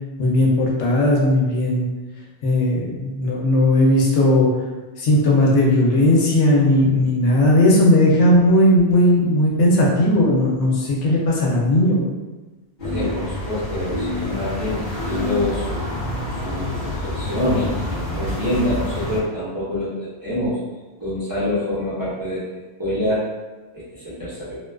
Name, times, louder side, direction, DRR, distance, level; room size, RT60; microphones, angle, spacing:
voice 1, 0.2-1.8 2.4-4.5 5.0-12.0, left 1 dB, 90° left, -3 dB, 0.9 m, -17 dB
sound 1, 12.8-19.2, left 1 dB, 50° left, 0.8 m, -27 dB
voice 2, 12.8-15.9 16.4-20.6 21.0-22.4 22.8-23.2 23.7-24.6, left 1 dB, 25° right, -12 dB, 0.6 m, -26 dB
2.4 x 2.3 x 2.2 m, 1.2 s
omnidirectional pair, 1.2 m